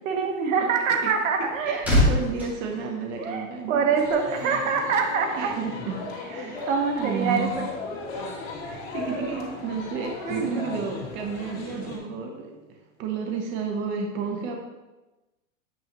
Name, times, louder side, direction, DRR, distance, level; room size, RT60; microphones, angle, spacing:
voice 1, 0.0-1.9 3.2-5.5 6.7-7.7 8.2-8.3 10.2-10.8, right 5 dB, 70° right, 4 dB, 1.3 m, -25 dB
sound 1, 1.2-3.8 4.1-4.3, left 1 dB, 5° right, 2.3 m, -26 dB
voice 2, 1.6-3.9 4.3-4.6 5.4-6.0 6.3-6.7 6.9-7.5 8.9-14.6, right 5 dB, 30° right, 2 dB, 0.9 m, -32 dB
sound 2, 4.0-12.0, left 3 dB, 50° left, 2.7 m, -37 dB
sound 3, 4.1-7.6, left 7 dB, 70° left, 1.9 m, -44 dB
8.4 x 6.7 x 3.0 m, 1.1 s
supercardioid pair, 150°, 40 cm